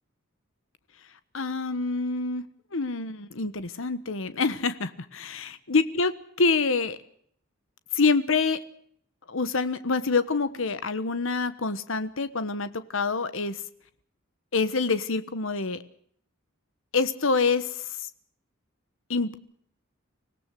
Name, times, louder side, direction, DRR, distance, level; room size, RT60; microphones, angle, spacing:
voice 1, 1.3-2.4 2.7-6.1 6.4-7.0 7.9-8.6 9.3-13.6 14.5-15.8 16.9-17.8 19.1-19.4, left 4 dB, 65° left, 13 dB, 1.3 m, -26 dB
25.0 x 18.0 x 7.7 m, 0.65 s
head